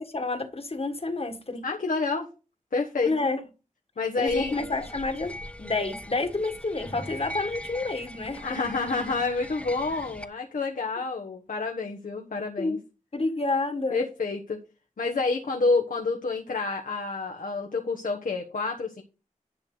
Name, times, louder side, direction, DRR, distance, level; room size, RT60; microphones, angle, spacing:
voice 1, 0.0-1.6 3.0-3.4 4.2-5.3 5.6-8.4 12.6-12.8 13.1-14.0, left 3 dB, 45° left, 1.6 m, -29 dB
voice 2, 1.6-2.3 2.7-3.1 4.0-4.5 8.4-12.8 13.9-14.6 15.0-19.0, left 3 dB, 90° left, 1.2 m, -28 dB
sound 1, 4.3-10.3, left 1 dB, 10° left, 1.0 m, -41 dB
10.5 x 6.4 x 3.9 m
wide cardioid pair, 70°, 14 cm